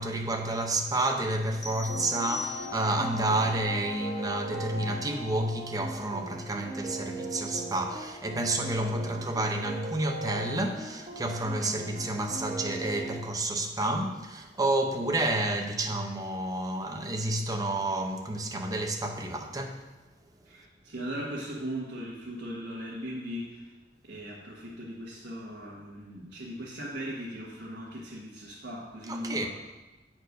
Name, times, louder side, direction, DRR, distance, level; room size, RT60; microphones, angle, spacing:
voice 1, 0.0-19.8 29.1-29.5, right 1 dB, 20° right, 3 dB, 0.7 m, -30 dB
Brass instrument, 1.5-5.9, left 1 dB, 85° left, 1.9 m, -42 dB
sound 1, 1.6-3.2, left 3 dB, 20° left, 1.0 m, -39 dB
sound 2, 1.9-13.2, right 2 dB, 45° right, 1.5 m, -39 dB
voice 2, 20.4-23.7 24.1-29.5, equal, 70° right, -6 dB, 1.4 m, -38 dB
8.2 x 4.4 x 5.2 m, 1.1 s
head